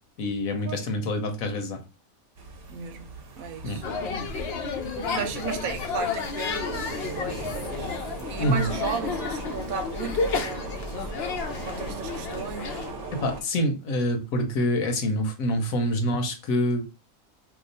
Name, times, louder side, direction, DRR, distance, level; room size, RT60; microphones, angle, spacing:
voice 1, 0.2-1.8 3.6-3.8 8.4-8.7 13.1-16.9, equal, 75° left, 1.2 m, -26 dB
sound 1, 2.4-13.4, right 2 dB, 50° right, 0.9 m, -38 dB
voice 2, 2.7-3.1 3.4-4.4 5.1-6.7 7.0-10.7 11.6-12.9, right 6 dB, 80° right, 1.0 m, -35 dB
sound 2, 3.8-12.9, left 5 dB, 60° left, 0.7 m, -32 dB
2.9 x 2.4 x 3.9 m
omnidirectional pair, 1.5 m